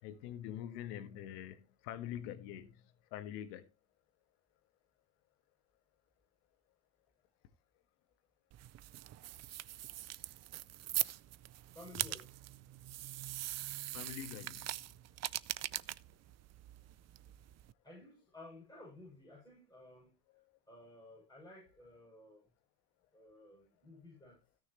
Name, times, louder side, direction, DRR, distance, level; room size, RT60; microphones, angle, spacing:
voice 1, 0.0-2.8 3.1-3.7 13.9-14.8 20.3-20.4, left 11 dB, 80° left, 1.7 m, -45 dB
sound 1, 8.5-17.7, right 14 dB, 35° right, 0.5 m, -42 dB
voice 2, 11.7-12.3 17.8-20.1 20.7-22.5 23.1-24.4, left 2 dB, 10° left, 7.0 m, -54 dB
16.5 x 6.4 x 3.1 m
supercardioid pair, 105°, 48 cm